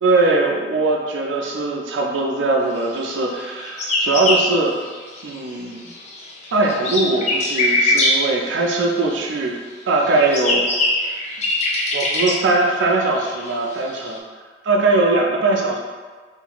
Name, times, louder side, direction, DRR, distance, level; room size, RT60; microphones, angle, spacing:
voice 1, 0.0-4.8 5.2-5.9 6.5-9.6 9.8-10.7 11.9-14.2 14.6-15.8, right 3 dB, 70° right, 0 dB, 0.4 m, -20 dB
sound 1, 3.3-5.5 5.8-9.4 9.9-14.2, left 2 dB, 35° left, 0.4 m, -23 dB
2.5 x 2.4 x 2.9 m, 1.5 s
head